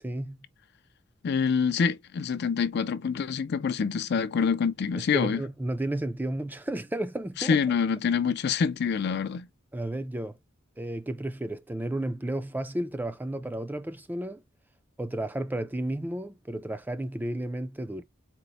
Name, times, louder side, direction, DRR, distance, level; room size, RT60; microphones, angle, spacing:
voice 1, 0.0-0.4 5.0-7.6 9.7-10.4 10.8-14.4 15.0-18.0, right 1 dB, 10° right, 0.4 m, -32 dB
voice 2, 1.2-5.4 7.4-9.5, left 6 dB, 55° left, 0.4 m, -26 dB
4.4 x 2.0 x 4.0 m
head